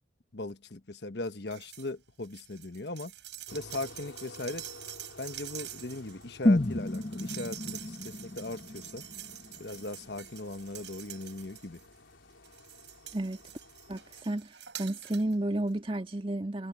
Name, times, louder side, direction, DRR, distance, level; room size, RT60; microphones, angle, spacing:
voice 1, 0.3-3.1 3.5-4.6 5.2-9.0 9.6-11.8, left 2 dB, 60° left, 1.2 m, -39 dB
sound 1, 1.5-1.9 2.2-12.0 12.4-15.4 15.7-15.8, right 12 dB, 65° right, 7.4 m, -46 dB
sound 2, 3.5-14.2, left 2 dB, 80° left, 4.0 m, -53 dB
sound 3, 6.5-10.4 10.7-10.8, left 1 dB, 35° left, 1.1 m, -31 dB
voice 2, 13.9-14.5 14.8-16.7, right 1 dB, 25° right, 1.9 m, -32 dB
head